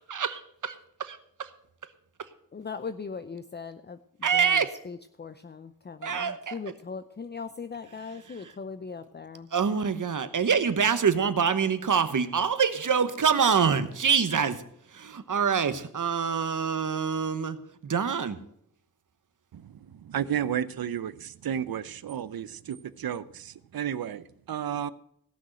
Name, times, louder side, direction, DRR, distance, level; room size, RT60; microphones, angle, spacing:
voice 1, 0.1-1.5 4.2-4.7 6.0-6.5 8.4-8.5 9.5-14.6 14.9-17.6 17.8-18.4, right 6 dB, 60° right, 1.1 m, -25 dB
voice 2, 2.5-4.0 4.3-9.5, left 5 dB, 30° left, 0.6 m, -39 dB
voice 3, 19.5-24.9, right 9 dB, 80° right, 0.7 m, -33 dB
17.0 x 6.3 x 7.7 m
wide cardioid pair, 80°, 35 cm